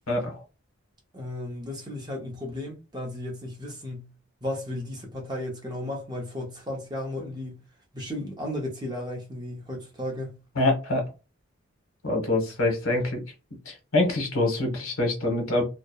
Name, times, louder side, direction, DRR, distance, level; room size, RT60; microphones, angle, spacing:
voice 1, 0.1-0.4 10.6-11.0 12.0-13.2 13.7-15.6, left 2 dB, 80° left, 0.9 m, -25 dB
voice 2, 1.1-4.1 4.4-7.6 7.9-10.4, left 1 dB, 20° right, 0.6 m, -34 dB
2.7 x 2.0 x 2.2 m
head